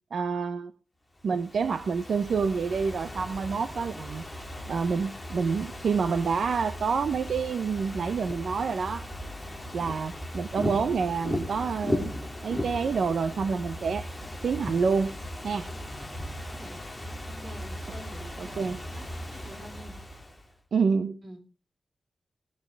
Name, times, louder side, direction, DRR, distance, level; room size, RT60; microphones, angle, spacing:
voice 1, 0.1-0.7 1.2-4.2 4.7-9.0 9.7-12.1 12.4-14.1 14.4-15.1 15.4-15.7 18.4-18.8 20.7-21.2, right 5 dB, 80° right, 0.7 m, -28 dB
Ocean / Fireworks, 1.2-20.5, left 1 dB, 5° left, 2.6 m, -37 dB
voice 2, 16.4-16.8 17.3-19.9 21.2-21.4, right 1 dB, 40° right, 3.8 m, -48 dB
17.5 x 14.5 x 3.4 m
wide cardioid pair, 180°, 0 cm